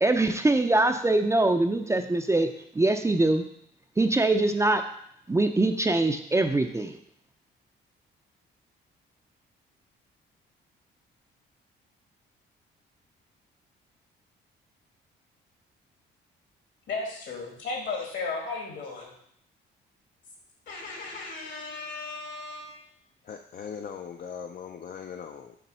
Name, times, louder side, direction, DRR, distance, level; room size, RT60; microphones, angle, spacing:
voice 1, 0.0-3.4 4.0-4.8 5.3-7.0, right 2 dB, 15° right, 6 dB, 0.5 m, -23 dB
voice 2, 16.9-19.1 20.7-22.8, left 3 dB, 70° left, 0 dB, 2.1 m, -35 dB
voice 3, 23.2-25.6, left 7 dB, 50° left, 5 dB, 0.5 m, -39 dB
6.8 x 3.0 x 5.5 m, 0.70 s
cardioid pair, 90°, 20 cm